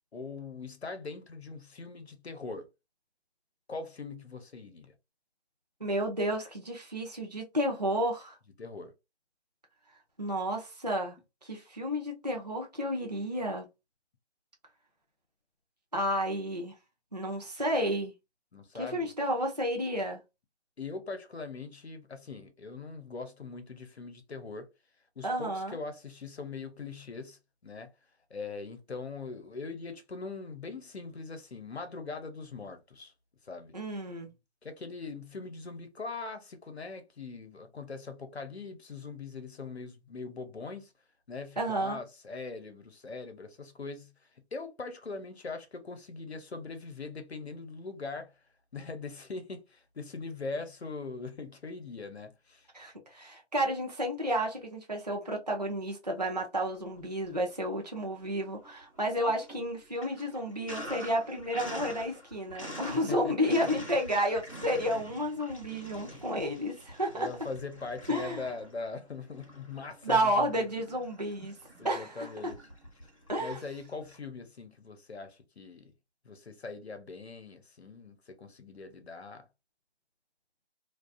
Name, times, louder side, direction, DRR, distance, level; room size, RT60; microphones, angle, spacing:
voice 1, 0.1-2.7 3.7-4.9 8.6-8.9 18.5-19.1 20.8-24.7 25.2-27.9 28.3-33.1 33.4-33.7 34.6-40.9 41.3-44.1 44.5-48.3 48.7-52.7 62.9-63.3 66.1-66.2 67.1-70.7 71.8-72.6 73.4-75.9 76.2-79.5, left 4 dB, 70° left, 0.7 m, -41 dB
voice 2, 5.8-8.4 10.2-13.7 15.9-16.8 17.1-18.1 18.7-20.2 25.2-25.8 33.7-34.3 41.6-42.0 52.7-67.3 68.1-68.5 70.0-71.6 71.8-72.5 73.3-73.6, equal, 40° right, 0.4 m, -31 dB
Sink (filling or washing), 56.8-57.7 58.1-74.2, equal, 30° left, 0.7 m, -46 dB
2.3 x 2.3 x 2.4 m
figure-of-eight pair, 175°, 34 cm